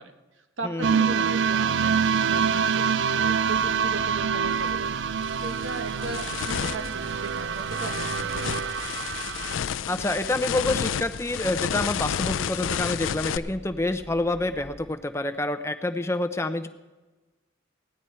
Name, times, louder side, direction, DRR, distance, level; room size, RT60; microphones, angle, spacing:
voice 1, 0.0-8.8, right 2 dB, 85° right, 6 dB, 1.3 m, -38 dB
voice 2, 0.6-1.0 9.9-16.7, left 2 dB, 15° left, 8 dB, 0.6 m, -27 dB
sound 1, 0.8-9.5, right 6 dB, 65° right, 0.4 m, -26 dB
sound 2, 3.5-14.9, equal, 20° right, 1.1 m, -47 dB
sound 3, 4.5-4.7 5.2-13.4, left 8 dB, 85° left, 0.4 m, -31 dB
17.0 x 11.0 x 4.4 m, 1.2 s
head